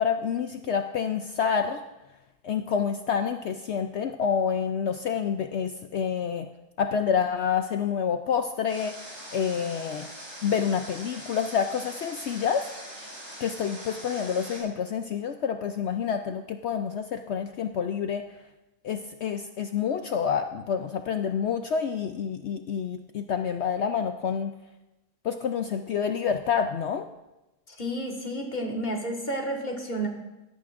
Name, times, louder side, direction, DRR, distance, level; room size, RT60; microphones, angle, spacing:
voice 1, 0.0-1.8 2.4-6.5 6.8-8.9 9.3-10.1 10.4-12.7 13.4-18.2 18.8-24.5 25.2-27.1, left 7 dB, 65° left, 7 dB, 0.7 m, -28 dB
Water, 8.7-14.6, equal, 55° right, 5.0 m, -42 dB
voice 2, 27.7-30.1, right 1 dB, 30° left, 1 dB, 1.6 m, -31 dB
17.0 x 12.0 x 2.5 m, 1.0 s
omnidirectional pair, 1.6 m